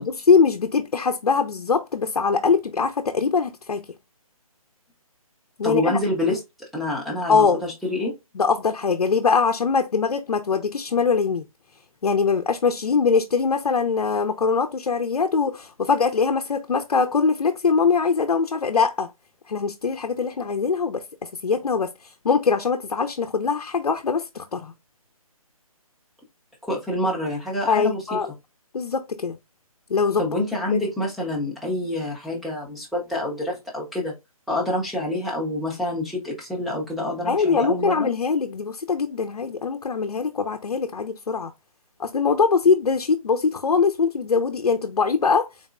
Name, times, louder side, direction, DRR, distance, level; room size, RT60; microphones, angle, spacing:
voice 1, 0.0-3.8 5.6-6.0 7.3-7.6 8.4-11.4 12.0-19.1 19.5-21.0 21.4-21.9 22.2-24.7 27.7-28.3 28.7-29.4 29.9-30.3 30.7-30.8 37.2-41.5 42.0-45.5, left 5 dB, 80° left, 0.6 m, -22 dB
voice 2, 5.6-6.4 6.7-8.1 26.6-28.2 30.2-34.1 34.5-38.1, left 1 dB, ahead, 0.6 m, -27 dB
4.0 x 2.9 x 2.4 m
figure-of-eight pair, 155°, 19 cm